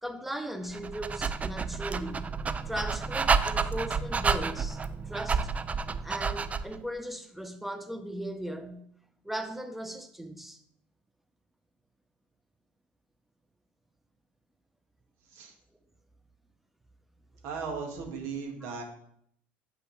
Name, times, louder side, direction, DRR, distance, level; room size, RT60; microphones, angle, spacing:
voice 1, 0.0-2.4 2.7-4.8 5.1-5.5 6.0-8.9 9.2-10.6 18.6-18.8, right 1 dB, 5° right, 0.9 m, -37 dB
Dog, 0.7-6.8, right 5 dB, 25° right, 0.5 m, -30 dB
voice 2, 17.4-18.8, right 5 dB, 65° right, 1.9 m, -36 dB
7.6 x 5.5 x 3.3 m
hypercardioid pair, 75°, 6 cm